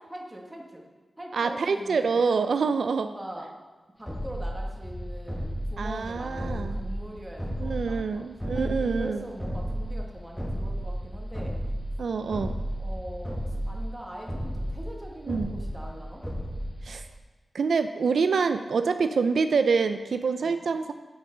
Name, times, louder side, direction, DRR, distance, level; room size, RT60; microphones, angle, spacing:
voice 1, 0.1-0.8 1.2-2.6 3.0-3.6 4.0-8.2 8.5-11.6 12.8-16.2 20.4-20.6, right 1 dB, 15° right, -1 dB, 1.4 m, -42 dB
voice 2, 1.3-3.1 5.8-6.8 7.6-9.2 12.0-12.6 15.3-15.6 16.8-17.1 17.5-20.9, right 5 dB, 80° right, 9 dB, 0.3 m, -26 dB
sound 1, 4.1-17.2, equal, 5° left, 1.3 m, -33 dB
9.5 x 6.6 x 3.8 m, 1.3 s
wide cardioid pair, 110°, 0 cm